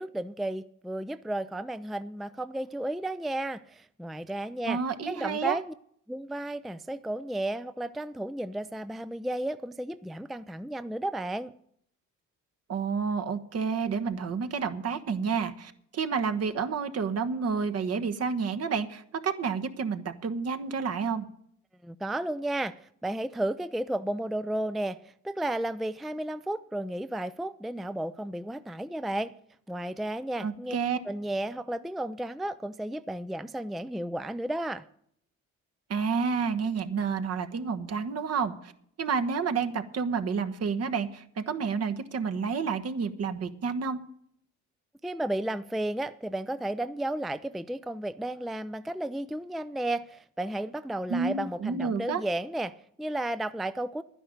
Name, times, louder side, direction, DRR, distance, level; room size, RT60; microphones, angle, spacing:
voice 1, 0.0-4.8 5.1-5.7 6.1-11.5 21.8-29.3 29.7-30.7 31.1-34.8 45.0-54.0, right 1 dB, ahead, 0.4 m, -33 dB
voice 2, 4.6-5.6 12.7-21.3 30.4-31.0 35.9-38.7 39.0-44.0 51.1-52.2, right 5 dB, 55° right, 1.2 m, -30 dB
11.0 x 10.0 x 6.5 m
cardioid pair, 90°, 30 cm